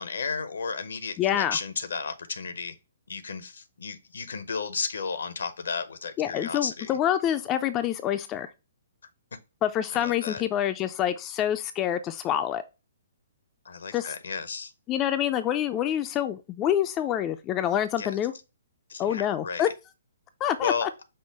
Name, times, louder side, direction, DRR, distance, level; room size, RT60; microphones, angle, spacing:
voice 1, 0.0-2.8 3.1-7.0 9.9-10.4 13.6-14.7 18.0-18.1 18.9-19.7 20.6-20.9, left 5 dB, 70° left, 0.7 m, -33 dB
voice 2, 1.2-1.6 6.2-8.5 9.6-12.6 13.9-14.1 14.9-18.3 19.0-19.7 20.4-20.9, left 11 dB, 25° left, 0.4 m, -26 dB
5.5 x 2.1 x 4.5 m
figure-of-eight pair, 125°, 0 cm